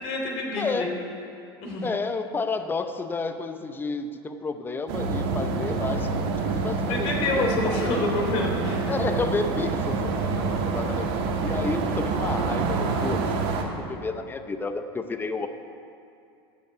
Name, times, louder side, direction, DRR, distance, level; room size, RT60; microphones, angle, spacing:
voice 1, 0.0-0.9 1.6-1.8 6.9-9.1, left 2 dB, 55° left, -1 dB, 3.0 m, -28 dB
voice 2, 0.6-0.9 1.8-6.1 6.4-7.1 7.6-8.1 8.9-11.1 11.4-15.5, left 4 dB, 15° left, 8 dB, 0.7 m, -31 dB
sound 1, 4.9-13.6, right 4 dB, 65° right, 1.6 m, -27 dB
13.5 x 5.4 x 8.1 m, 2.5 s
hypercardioid pair, 100°, 13 cm